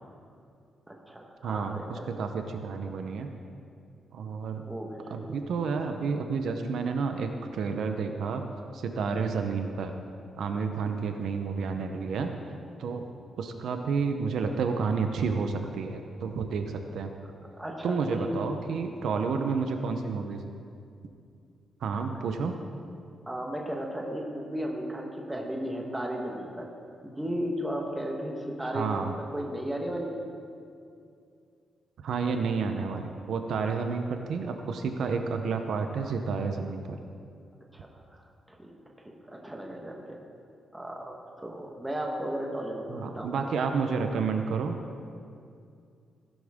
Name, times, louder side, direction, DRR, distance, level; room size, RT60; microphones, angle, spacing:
voice 1, 0.9-2.1 4.7-5.4 17.5-18.3 23.3-26.7 27.0-30.2 37.7-38.2 38.5-38.7 39.0-40.2 40.7-43.4, equal, 5° right, 0 dB, 1.3 m, -35 dB
voice 2, 1.4-3.3 4.1-4.6 5.1-8.4 8.7-9.9 10.4-12.3 12.8-13.1 13.4-17.1 17.8-20.4 21.8-22.6 28.6-29.1 32.0-37.0 42.9-44.8, right 5 dB, 65° right, 5 dB, 0.7 m, -30 dB
16.0 x 11.5 x 3.6 m, 2.4 s
wide cardioid pair, 180°, 0 cm